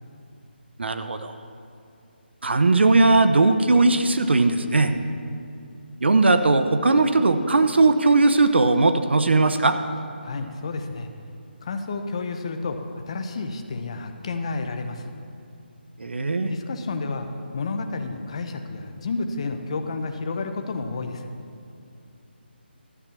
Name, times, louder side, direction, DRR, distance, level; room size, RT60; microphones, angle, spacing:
voice 1, 0.8-1.3 2.4-4.9 6.0-9.8 16.0-16.5, right 3 dB, 75° right, 9 dB, 0.8 m, -19 dB
voice 2, 10.2-11.1 11.6-15.2 16.4-17.3 17.5-21.3, left 3 dB, 30° left, 6 dB, 0.8 m, -31 dB
12.5 x 7.4 x 6.9 m, 2.6 s
hypercardioid pair, 170°, 6 cm